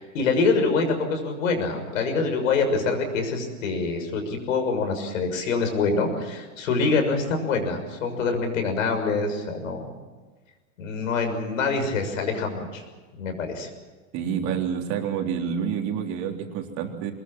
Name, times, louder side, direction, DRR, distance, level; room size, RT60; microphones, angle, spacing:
voice 1, 0.0-9.9 10.8-12.8 13.2-13.7, left 4 dB, 75° left, 5 dB, 6.6 m, -25 dB
voice 2, 14.1-17.1, right 7 dB, 45° right, 3 dB, 3.6 m, -28 dB
24.0 x 20.5 x 7.5 m, 1.3 s
hypercardioid pair, 125°, 39 cm